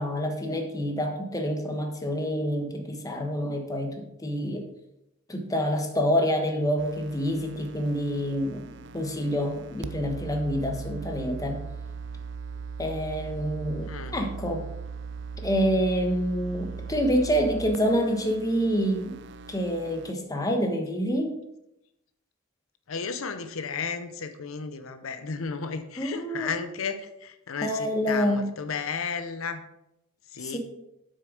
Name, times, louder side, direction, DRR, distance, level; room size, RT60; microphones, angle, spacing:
voice 1, 0.0-4.6 5.3-11.6 12.8-14.6 15.4-19.2 19.5-21.4 26.0-26.5 27.6-28.5 30.4-30.6, equal, 15° left, 3 dB, 1.1 m, -27 dB
sound 1, 6.8-20.1, right 5 dB, 60° right, 0.5 m, -39 dB
voice 2, 13.9-14.2 22.9-29.6 30.3-30.6, left 5 dB, 75° left, 9 dB, 0.7 m, -33 dB
7.7 x 6.5 x 5.0 m, 0.86 s
head